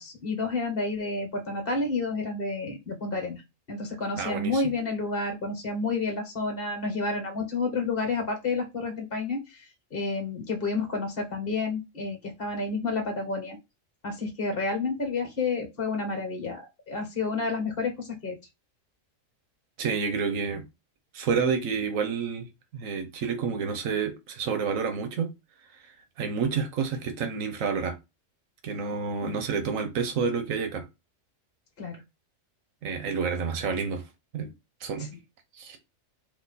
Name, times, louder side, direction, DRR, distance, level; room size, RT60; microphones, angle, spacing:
voice 1, 0.0-3.4 3.7-9.6 9.9-13.6 14.0-18.4 29.2-29.4 31.8-32.0 35.0-35.1, left 3 dB, 45° left, 1.7 m, -30 dB
voice 2, 4.2-4.6 19.8-20.6 21.1-22.5 22.7-25.3 26.2-27.9 28.6-30.8 32.8-34.0 34.3-34.5 34.8-35.1 35.6-35.8, right 5 dB, 90° right, 1.2 m, -29 dB
4.7 x 2.6 x 4.0 m
omnidirectional pair, 1.3 m